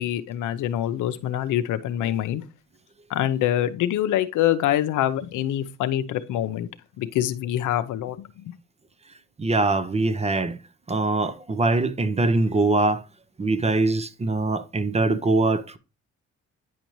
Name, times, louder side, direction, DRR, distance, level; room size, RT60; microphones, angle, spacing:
voice 1, 0.0-2.4 3.1-6.7 7.0-8.2 8.5-8.6, left 12 dB, 85° left, 0.7 m, -25 dB
voice 2, 9.4-10.6 10.9-13.0 13.4-15.8, right 2 dB, 20° right, 0.6 m, -23 dB
9.3 x 5.2 x 3.0 m
cardioid pair, 90°, 30 cm